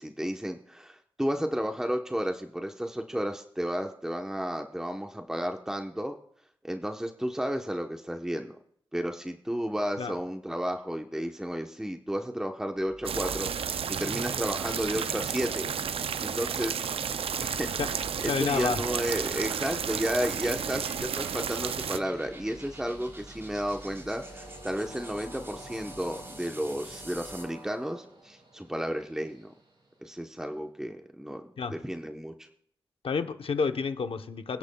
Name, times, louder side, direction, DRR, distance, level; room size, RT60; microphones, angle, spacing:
voice 1, 0.0-6.1 6.6-8.6 8.9-15.7 16.2-16.9 17.4-17.7 18.2-29.5 30.0-32.5, equal, 5° right, 0.9 m, -32 dB
sound 1, 12.9-27.6, right 1 dB, 25° right, 3.4 m, -47 dB
sound 2, 13.0-22.0, right 7 dB, 90° right, 0.4 m, -32 dB
Train, 13.7-30.4, right 1 dB, 65° right, 5.3 m, -52 dB
voice 2, 18.2-18.8 31.6-31.8 33.0-34.6, left 5 dB, 75° left, 0.8 m, -29 dB
27.0 x 10.5 x 2.3 m
wide cardioid pair, 75°, 9 cm